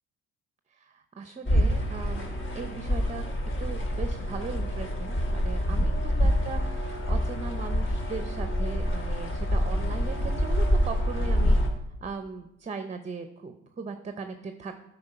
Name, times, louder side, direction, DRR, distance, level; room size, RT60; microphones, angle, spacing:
voice 1, 0.7-3.2 3.6-11.6 12.0-14.9, right 4 dB, 25° right, 8 dB, 0.6 m, -38 dB
sound 1, 1.5-11.7, equal, 40° left, 1.5 m, -26 dB
9.6 x 4.3 x 5.5 m, 0.84 s
cardioid pair, 90°, 30 cm